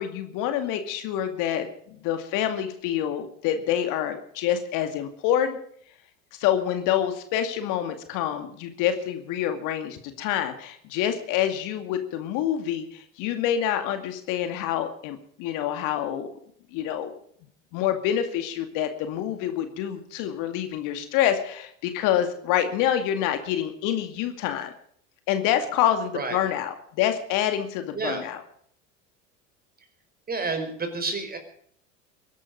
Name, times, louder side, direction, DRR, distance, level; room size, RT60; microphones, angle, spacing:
voice 1, 0.0-5.6 6.4-16.3 16.7-17.1 17.7-24.7 25.3-28.4, left 10 dB, 55° left, 8 dB, 2.3 m, -27 dB
voice 2, 30.3-31.4, right 3 dB, 25° right, 7 dB, 4.9 m, -29 dB
22.5 x 11.5 x 5.3 m, 0.64 s
figure-of-eight pair, 75°, 38 cm